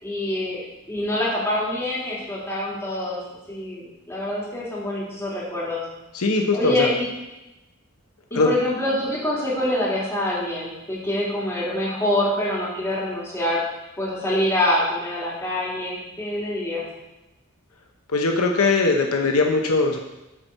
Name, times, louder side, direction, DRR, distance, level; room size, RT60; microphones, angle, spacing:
voice 1, 0.0-3.2 3.5-5.8 6.5-7.0 8.3-13.6 14.0-16.8, left 1 dB, 10° left, -7 dB, 2.7 m, -25 dB
voice 2, 6.1-6.9 8.3-8.5 18.1-20.0, left 3 dB, 75° left, 3 dB, 0.9 m, -20 dB
8.8 x 4.5 x 6.5 m, 0.98 s
head